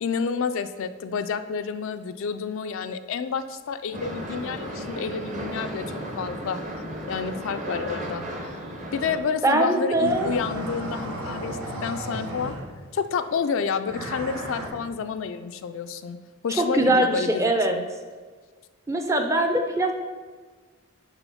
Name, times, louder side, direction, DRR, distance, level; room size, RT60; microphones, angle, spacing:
voice 1, 0.0-5.9 6.2-6.6 7.1-8.3 8.9-12.6 12.9-16.2 16.4-17.8, left 6 dB, 65° left, 10 dB, 0.3 m, -29 dB
sound 1, 3.9-9.2, right 1 dB, 35° right, 0.9 m, -34 dB
voice 2, 9.4-10.3 16.6-17.8 18.9-20.0, right 1 dB, 15° right, 5 dB, 0.5 m, -22 dB
sound 2, 9.9-12.9 13.9-14.7, right 1 dB, 90° right, 1.3 m, -34 dB
7.0 x 3.7 x 5.6 m, 1.5 s
head